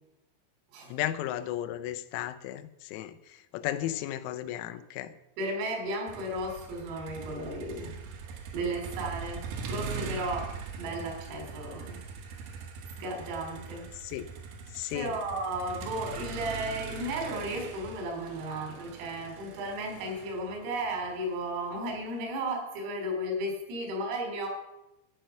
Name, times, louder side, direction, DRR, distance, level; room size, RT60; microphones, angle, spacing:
voice 1, 0.9-3.2 3.5-5.1 14.0-14.3 14.7-15.1, left 13 dB, 90° left, 10 dB, 3.4 m, -34 dB
voice 2, 5.4-7.9 8.5-10.5 10.8-12.0 12.3-12.4 13.0-13.8 14.9-24.5, right 1 dB, 90° right, 2 dB, 5.8 m, -34 dB
Motor vehicle (road), 6.1-22.2, right 5 dB, 70° right, 2.4 m, -41 dB
11.5 x 9.1 x 5.7 m, 0.91 s
omnidirectional pair, 6.0 m